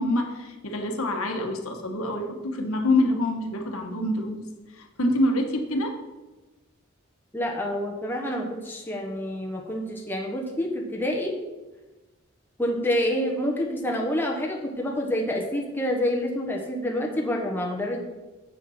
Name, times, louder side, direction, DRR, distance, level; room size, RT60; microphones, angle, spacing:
voice 1, 0.0-4.5 4.7-5.9, left 1 dB, 80° left, 3 dB, 1.2 m, -26 dB
voice 2, 7.3-11.4 12.6-18.0, left 1 dB, 10° left, -1 dB, 1.0 m, -27 dB
7.7 x 5.6 x 5.7 m, 1.1 s
head